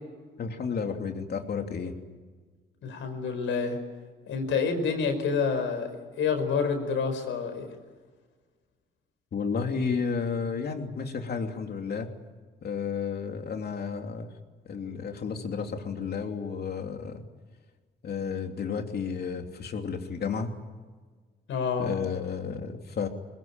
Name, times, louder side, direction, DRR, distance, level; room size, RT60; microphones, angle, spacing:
voice 1, 0.4-1.9 9.3-12.1 12.6-14.3 14.6-17.2 18.0-20.5 21.8-23.1, left 5 dB, 55° left, 4 dB, 3.1 m, -32 dB
voice 2, 2.8-3.8 4.3-5.9 6.2-7.7 21.5-22.0, left 5 dB, 75° left, 6 dB, 5.3 m, -28 dB
21.5 x 21.0 x 8.9 m, 1.5 s
cardioid pair, 90°, 20 cm